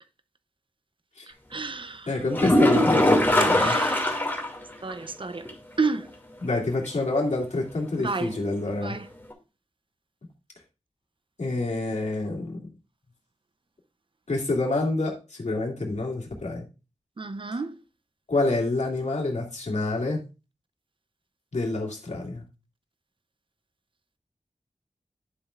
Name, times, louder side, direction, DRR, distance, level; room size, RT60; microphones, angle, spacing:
voice 1, 1.5-2.1 3.6-4.1 4.8-5.5 5.8-6.1 8.0-8.4 8.8-9.1 17.2-17.7, right 4 dB, 45° right, 0.7 m, -30 dB
voice 2, 2.1-3.8 6.4-9.0 11.4-12.7 14.3-16.6 18.3-20.2 21.5-22.4, left 2 dB, 85° left, 2.6 m, -27 dB
sound 1, 2.3-4.6 4.9-5.0 5.4-5.5 9.3-9.4, left 1 dB, 15° left, 2.5 m, -21 dB
11.0 x 6.9 x 2.5 m
wide cardioid pair, 85°, 12 cm